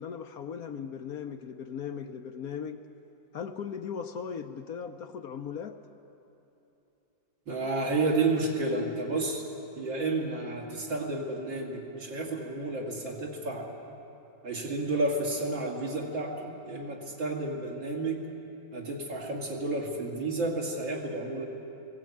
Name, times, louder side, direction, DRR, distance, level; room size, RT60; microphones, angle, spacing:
voice 1, 0.0-2.8 3.3-5.8, left 7 dB, 65° left, 7 dB, 1.0 m, -38 dB
voice 2, 7.5-9.4 9.8-13.7 14.4-18.2 18.7-21.4, right 2 dB, 85° right, -2 dB, 3.3 m, -31 dB
20.0 x 17.0 x 8.6 m, 3.0 s
omnidirectional pair, 2.0 m